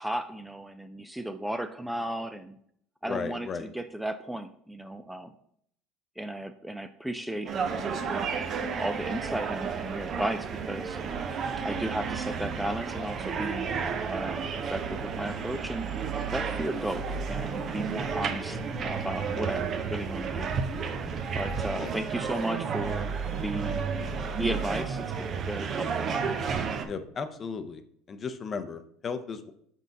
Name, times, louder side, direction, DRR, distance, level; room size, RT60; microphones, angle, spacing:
voice 1, 0.0-2.6 3.0-5.3 6.2-8.1 8.6-11.3 11.6-13.7 14.1-15.9 16.3-20.5 21.3-23.8 24.4-26.1, right 1 dB, 5° right, 9 dB, 0.4 m, -35 dB
voice 2, 3.0-3.7 18.3-18.6 21.8-21.9 26.8-27.8 28.1-29.5, left 5 dB, 35° left, 10 dB, 0.7 m, -35 dB
sound 1, 7.5-26.9, right 5 dB, 45° right, 0.7 m, -32 dB
6.2 x 4.0 x 4.0 m, 0.67 s
supercardioid pair, 90°, 0 cm